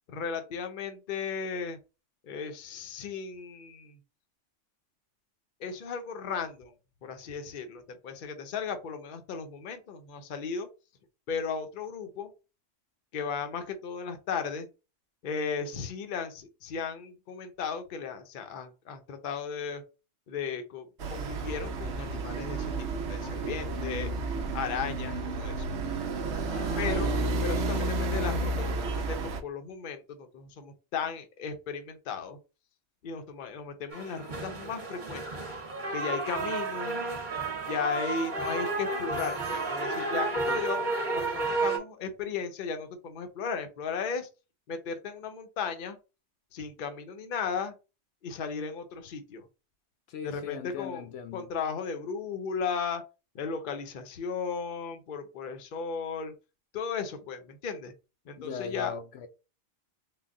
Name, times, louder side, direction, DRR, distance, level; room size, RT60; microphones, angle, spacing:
voice 1, 0.1-1.8 2.2-4.0 5.6-6.7 7.0-10.7 11.3-12.3 13.1-14.7 15.2-19.8 20.3-22.7 23.1-24.1 24.5-25.7 26.8-32.4 33.0-35.4 35.9-37.1 37.6-44.3 44.7-46.0 46.5-47.7 48.2-49.4 50.2-51.0 51.3-53.0 53.3-56.3 56.7-57.9 58.3-58.9, left 5 dB, 50° left, 0.7 m, -35 dB
sound 1, 21.0-29.4, right 2 dB, 75° right, 1.0 m, -31 dB
voice 2, 26.5-27.1 27.7-27.9 40.5-40.6 50.1-51.5 58.4-59.3, left 6 dB, 80° left, 0.9 m, -40 dB
sound 2, 33.9-41.8, right 3 dB, 45° right, 1.1 m, -32 dB
3.8 x 2.2 x 3.6 m
omnidirectional pair, 1.2 m